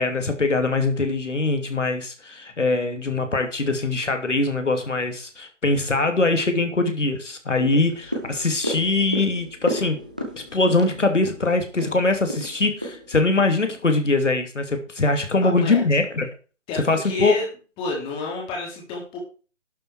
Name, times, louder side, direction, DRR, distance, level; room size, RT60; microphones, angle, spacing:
voice 1, 0.0-10.0 10.4-16.3 16.8-17.3, left 3 dB, 80° left, 7 dB, 2.8 m, -22 dB
sound 1, 7.6-14.1 14.4-14.5, equal, 5° right, 0.5 m, -33 dB
voice 2, 15.4-15.8 16.7-17.4 17.8-19.2, left 3 dB, 15° left, -2 dB, 3.4 m, -29 dB
11.5 x 7.2 x 4.8 m, 0.35 s
figure-of-eight pair, 150°, 36 cm